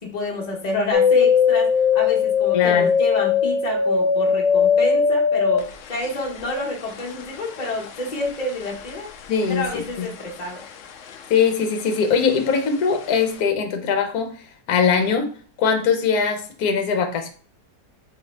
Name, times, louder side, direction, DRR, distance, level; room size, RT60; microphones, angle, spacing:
voice 1, 0.0-9.1 9.5-10.6, left 2 dB, 25° left, -1 dB, 1.1 m, -28 dB
sound 1, 0.9-10.3 10.6-11.5 11.8-12.7 13.1-13.2, left 6 dB, 80° left, 0.6 m, -21 dB
voice 2, 2.5-2.9 9.3-10.1 11.3-15.3 15.6-17.3, left 6 dB, 60° left, 4 dB, 1.2 m, -21 dB
4.3 x 3.7 x 3.2 m, 0.40 s
omnidirectional pair, 1.9 m